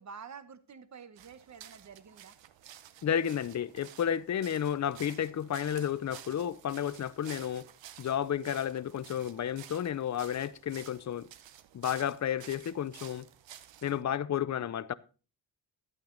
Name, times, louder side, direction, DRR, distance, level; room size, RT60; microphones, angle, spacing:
voice 1, 0.0-2.3, right 6 dB, 40° right, 1.0 m, -49 dB
sound 1, 1.2-14.0, right 11 dB, 90° right, 0.9 m, -52 dB
voice 2, 3.0-7.7 8.0-11.3 11.7-13.3 13.8-14.9, left 9 dB, 40° left, 0.5 m, -32 dB
12.0 x 8.9 x 3.8 m
wide cardioid pair, 120°, 43 cm